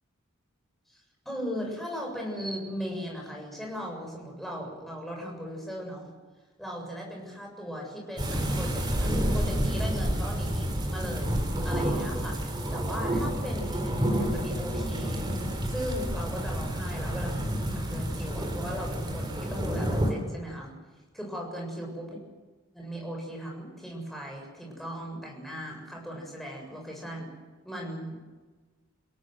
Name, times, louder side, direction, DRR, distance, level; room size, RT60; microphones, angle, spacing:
voice 1, 0.9-6.1 6.6-15.3 15.6-20.7 21.1-22.2 22.7-27.3 27.6-28.2, equal, ahead, -1 dB, 7.3 m, -38 dB
sound 1, 8.2-20.1, equal, 20° right, 4.2 m, -29 dB
29.0 x 17.5 x 8.0 m, 1.3 s
head